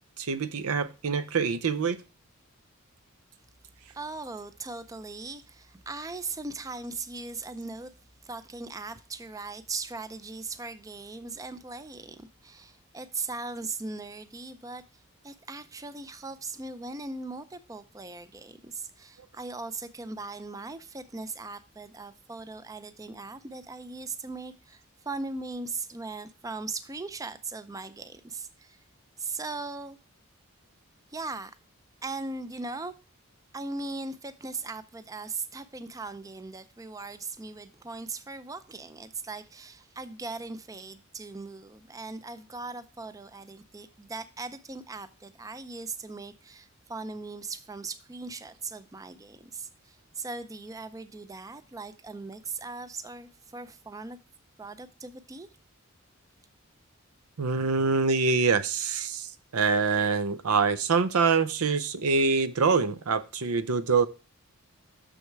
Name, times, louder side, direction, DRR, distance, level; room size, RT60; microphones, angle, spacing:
voice 1, 0.2-2.0 57.4-59.3 59.5-64.1, right 4 dB, 85° right, 0.6 m, -25 dB
voice 2, 3.9-7.9 8.2-14.8 15.2-28.8 29.2-30.0 31.1-31.5 32.0-32.9 33.5-54.2 54.6-55.5, right 3 dB, 15° right, 0.4 m, -39 dB
6.6 x 6.3 x 4.6 m
head